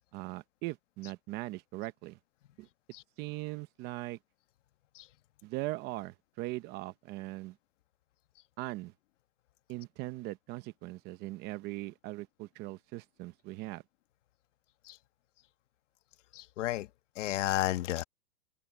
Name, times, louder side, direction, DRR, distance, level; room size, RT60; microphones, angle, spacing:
voice 1, 0.1-2.2 2.6-2.7 3.2-4.2 5.4-7.6 8.6-8.9 9.7-13.8, right 19 dB, 25° right, 0.8 m, -40 dB
voice 2, 16.3-16.9 17.2-18.0, left 15 dB, 55° left, 1.6 m, -32 dB
open air
hypercardioid pair, 150°, 42 cm